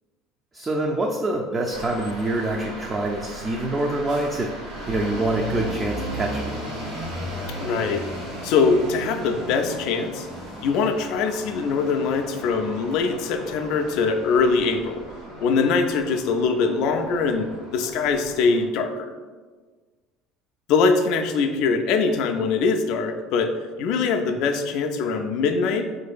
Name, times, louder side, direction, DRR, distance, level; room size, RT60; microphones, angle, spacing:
voice 1, 0.5-6.6, right 2 dB, 30° right, 0 dB, 0.4 m, -26 dB
sound 1, 1.7-18.7, equal, 80° right, 1.0 m, -36 dB
voice 2, 7.6-8.0 8.4-10.3 10.6-15.0 15.4-17.5 17.7-19.1 20.7-23.5 23.8-25.9, left 4 dB, 65° left, 5 dB, 0.3 m, -22 dB
4.2 x 2.5 x 2.3 m, 1.4 s
hypercardioid pair, 70°, 0 cm